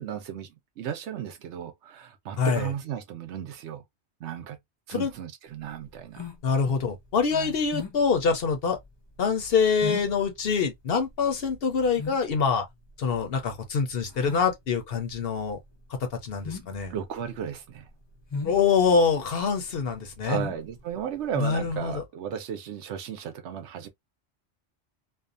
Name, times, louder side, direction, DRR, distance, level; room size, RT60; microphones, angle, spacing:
voice 1, 0.0-3.8 4.2-4.6 4.9-6.3 7.3-7.5 16.9-17.9 20.2-23.9, right 9 dB, 75° right, 0.9 m, -35 dB
voice 2, 2.4-2.7 4.9-5.1 6.4-8.8 9.2-12.6 13.0-15.6 15.9-16.9 18.4-20.4 21.4-22.0, left 5 dB, 60° left, 0.8 m, -25 dB
sound 1, 5.5-21.9, left 4 dB, 45° left, 0.3 m, -40 dB
2.6 x 2.2 x 2.4 m
omnidirectional pair, 1.2 m